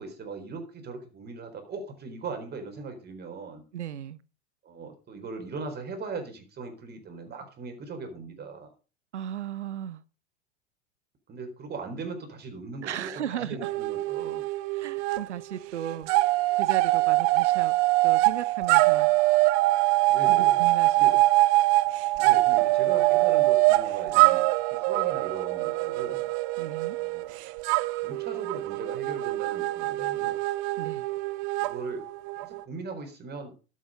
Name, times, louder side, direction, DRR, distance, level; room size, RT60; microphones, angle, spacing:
voice 1, 0.0-3.6 4.6-8.7 11.3-14.4 20.1-20.6 21.0-21.2 22.1-24.4 24.7-26.3 27.0-27.4 28.0-30.4 31.6-32.0 32.4-33.5, right 4 dB, 30° right, 4.2 m, -39 dB
voice 2, 3.7-4.2 9.1-10.0 12.8-13.7 14.7-16.1 16.6-17.7 18.0-19.1 20.3-21.2 26.6-27.0 30.8-31.0, right 10 dB, 80° right, 1.0 m, -36 dB
sound 1, 13.6-15.2 15.5-32.6, right 20 dB, 45° right, 0.8 m, -24 dB
12.5 x 8.0 x 5.4 m
hypercardioid pair, 90°, 35 cm